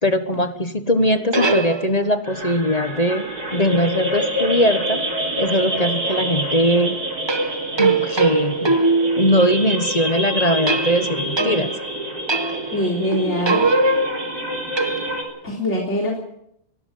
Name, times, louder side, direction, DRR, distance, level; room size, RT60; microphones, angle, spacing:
voice 1, 0.0-3.2 3.5-5.0 5.4-7.0 7.8-8.8 9.2-11.7, equal, 30° left, 9 dB, 1.2 m, -20 dB
sound 1, 1.0-2.3 7.3-9.7 10.7-11.9 12.3-12.8 13.1-15.4, right 3 dB, 20° right, 0.9 m, -22 dB
sound 2, 2.2-15.2, right 1 dB, 85° right, 4.5 m, -27 dB
voice 2, 12.7-13.7 15.4-16.2, equal, 50° left, -2 dB, 4.1 m, -23 dB
22.5 x 12.5 x 9.4 m, 0.75 s
omnidirectional pair, 1.6 m